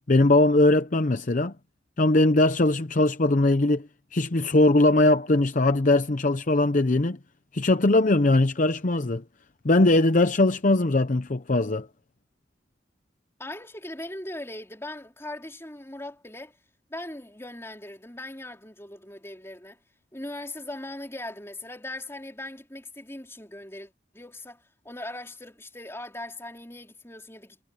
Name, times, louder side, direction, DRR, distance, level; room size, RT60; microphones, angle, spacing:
voice 1, 0.1-1.5 2.0-7.2 7.5-9.2 9.6-11.9, left 2 dB, 45° left, 0.7 m, -21 dB
voice 2, 13.4-16.6 16.9-19.8 20.1-27.6, left 1 dB, 15° left, 3.5 m, -39 dB
head